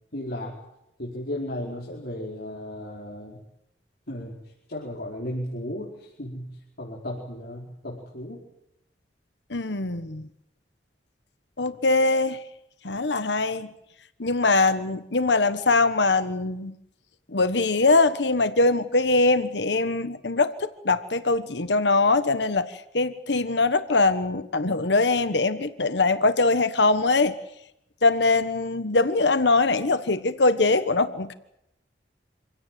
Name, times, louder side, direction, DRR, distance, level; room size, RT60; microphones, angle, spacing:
voice 1, 0.1-0.5 1.0-3.4 4.1-4.4 4.7-8.4, left 1 dB, 60° left, -4 dB, 5.1 m, -35 dB
voice 2, 9.5-10.2 11.6-12.4 12.8-13.7 14.2-16.7 17.3-27.4 28.0-31.3, left 3 dB, 85° left, 12 dB, 1.3 m, -22 dB
27.0 x 17.0 x 9.4 m, 0.82 s
head